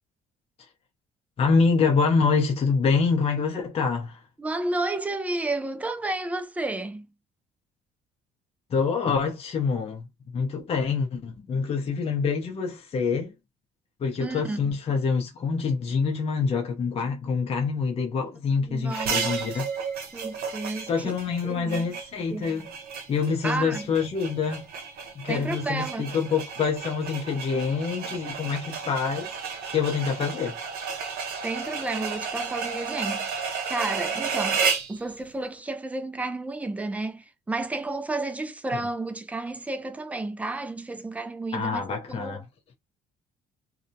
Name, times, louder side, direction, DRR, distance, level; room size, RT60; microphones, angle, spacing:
voice 1, 1.4-4.2 8.7-13.3 14.0-19.7 20.9-22.7 23.1-24.6 25.2-30.6 41.5-42.4, left 5 dB, 35° left, 0.6 m, -26 dB
voice 2, 4.4-7.1 14.2-14.7 18.6-19.4 20.1-21.1 21.4-21.9 22.3-22.7 23.4-23.9 25.3-26.2 31.4-33.3 33.7-41.8 42.1-42.4, right 2 dB, 10° right, 0.3 m, -32 dB
sound 1, 18.9-35.0, right 5 dB, 65° right, 0.8 m, -32 dB
2.2 x 2.1 x 2.6 m
cardioid pair, 110°, 17 cm